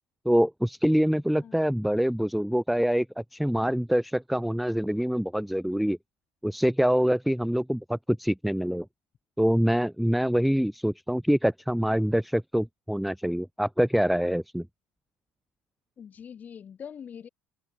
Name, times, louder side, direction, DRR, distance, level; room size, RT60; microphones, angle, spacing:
voice 1, 0.3-6.0 6.4-8.9 9.4-14.7, equal, ahead, 0.6 m, -25 dB
voice 2, 16.0-17.3, left 8 dB, 25° left, 2.4 m, -43 dB
cardioid pair, 160°, 6 cm